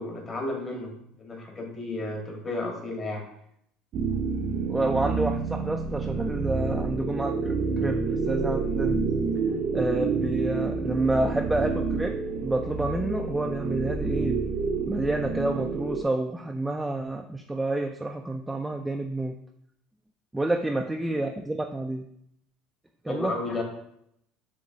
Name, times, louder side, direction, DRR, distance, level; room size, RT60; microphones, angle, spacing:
voice 1, 0.0-3.2 23.1-23.6, left 2 dB, 30° left, 1 dB, 1.4 m, -33 dB
sound 1, 3.9-16.0, right 4 dB, 55° right, 0.6 m, -28 dB
voice 2, 4.7-9.0 9.7-14.4 14.9-19.3 20.3-22.1 23.0-23.3, right 2 dB, 10° right, 3 dB, 0.4 m, -29 dB
6.7 x 2.9 x 2.7 m, 0.74 s
supercardioid pair, 90°, 0 cm